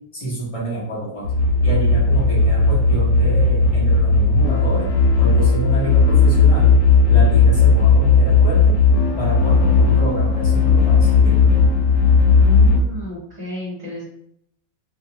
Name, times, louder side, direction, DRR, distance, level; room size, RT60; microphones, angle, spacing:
voice 1, 0.1-1.3 1.6-4.9 5.2-6.8 7.1-8.8 9.2-11.6, right 1 dB, 30° left, -6 dB, 0.7 m, -28 dB
sound 1, 1.2-12.8, left 4 dB, 85° left, 1.1 m, -15 dB
voice 2, 12.4-14.0, left 1 dB, 35° right, -9 dB, 0.9 m, -32 dB
2.5 x 2.3 x 2.8 m, 0.71 s
omnidirectional pair, 1.5 m